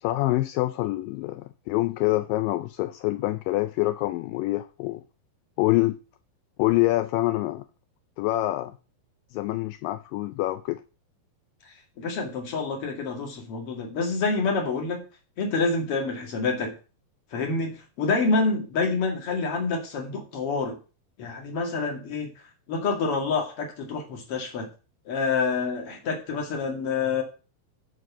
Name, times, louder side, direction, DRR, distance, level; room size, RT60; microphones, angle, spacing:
voice 1, 0.0-5.0 5.6-6.0 6.6-7.6 8.2-8.8 9.3-10.8, left 18 dB, 85° left, 2.0 m, -26 dB
voice 2, 12.0-15.0 15.4-16.7 17.3-20.7 21.2-22.3 22.7-24.7 25.1-27.2, left 4 dB, 40° left, 2.7 m, -27 dB
9.2 x 4.7 x 7.1 m
omnidirectional pair, 4.4 m